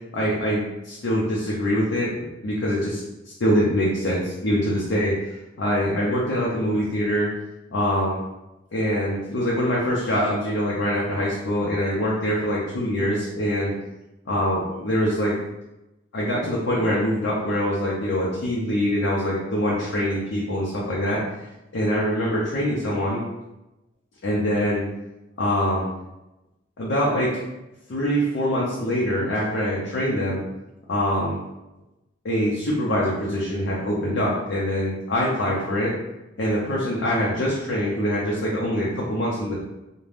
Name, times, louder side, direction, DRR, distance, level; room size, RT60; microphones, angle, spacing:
voice 1, 0.1-2.1 2.4-7.3 7.7-8.2 8.7-13.7 14.3-15.3 16.1-21.2 21.7-23.2 24.2-24.8 25.4-25.9 26.8-27.3 27.9-30.4 30.9-31.4 32.2-35.9 36.4-39.5, equal, 65° left, -5 dB, 0.5 m, -24 dB
2.5 x 2.1 x 3.3 m, 0.97 s
head